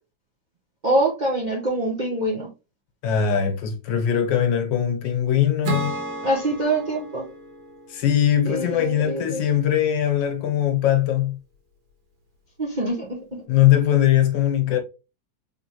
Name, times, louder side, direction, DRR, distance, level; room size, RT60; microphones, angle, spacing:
voice 1, 0.8-2.5 6.2-7.3 8.4-9.4 12.6-13.4, right 1 dB, 35° right, 0.7 m, -24 dB
voice 2, 3.0-6.0 7.9-11.4 13.5-14.8, left 10 dB, 75° left, 1.6 m, -21 dB
Acoustic guitar / Strum, 5.6-9.1, right 3 dB, 80° right, 2.0 m, -34 dB
3.7 x 3.4 x 2.9 m
omnidirectional pair, 2.1 m